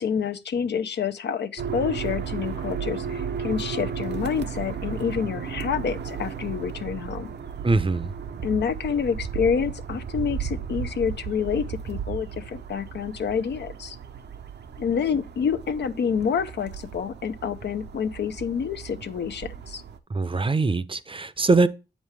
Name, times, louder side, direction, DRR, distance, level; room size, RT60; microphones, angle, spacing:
voice 1, 0.0-7.3 8.4-14.0 14.8-19.8, left 7 dB, 80° left, 0.7 m, -28 dB
sound 1, 1.6-20.0, right 7 dB, 75° right, 0.7 m, -34 dB
voice 2, 7.6-8.1 20.1-21.7, right 3 dB, 30° right, 0.6 m, -22 dB
7.2 x 5.2 x 3.3 m
cardioid pair, 50°, 18 cm